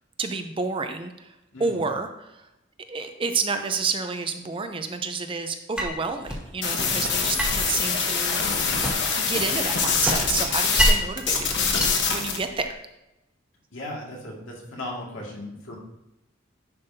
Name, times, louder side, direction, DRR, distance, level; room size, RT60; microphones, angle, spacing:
voice 1, 0.2-1.3 1.6-2.4 2.9-8.5 9.2-12.7, right 4 dB, 25° right, 7 dB, 0.5 m, -30 dB
voice 2, 1.5-1.8 6.8-7.1 13.7-15.8, left 1 dB, 80° left, -2 dB, 2.1 m, -37 dB
sound 1, 5.8-6.5 7.4-9.2 9.6-11.2 11.6-12.7, equal, 5° right, 1.6 m, -27 dB
sound 2, 6.6-10.9 11.2-12.4, left 5 dB, 60° left, 1.1 m, -24 dB
10.5 x 5.4 x 2.7 m, 0.90 s
head